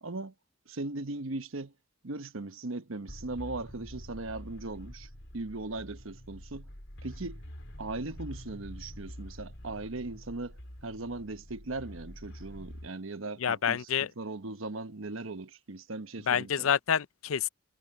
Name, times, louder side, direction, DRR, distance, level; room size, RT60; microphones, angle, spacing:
voice 1, 0.0-0.3 0.7-1.7 2.0-5.1 5.3-6.7 7.0-7.4 7.8-13.8 14.2-16.7, right 2 dB, 75° right, 1.1 m, -38 dB
sound 1, 3.1-12.9, equal, 65° left, 4.4 m, -46 dB
voice 2, 13.4-14.1 16.3-17.5, left 8 dB, 80° left, 0.5 m, -28 dB
head